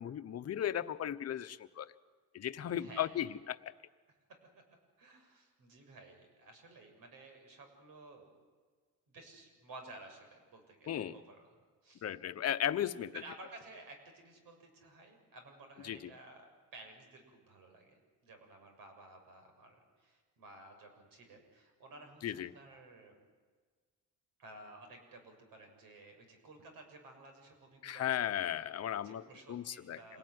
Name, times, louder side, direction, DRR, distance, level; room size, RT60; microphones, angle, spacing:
voice 1, 0.0-1.9 2.3-3.7 10.9-11.2 12.0-13.1 15.8-16.1 22.2-22.5 27.8-29.2 29.5-30.0, left 10 dB, 45° left, 10 dB, 1.0 m, -36 dB
voice 2, 2.8-3.2 5.0-8.4 9.1-11.5 11.8-12.4 13.2-23.2 24.4-28.4 29.0-30.2, right 2 dB, 75° right, 4 dB, 7.0 m, -55 dB
27.0 x 18.5 x 9.6 m, 1.5 s
cardioid pair, 145°, 34 cm